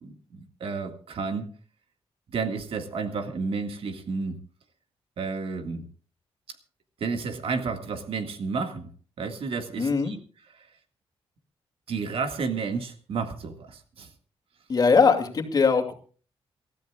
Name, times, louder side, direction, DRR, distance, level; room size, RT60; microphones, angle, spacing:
voice 1, 0.0-1.5 2.3-4.4 5.2-5.9 7.0-8.9 9.2-10.2 11.9-14.1, right 4 dB, 65° right, 7 dB, 1.8 m, -31 dB
voice 2, 9.8-10.1 14.7-15.9, left 5 dB, 40° left, 4 dB, 2.4 m, -21 dB
27.5 x 13.5 x 2.4 m, 0.39 s
cardioid pair, 120°, 10 cm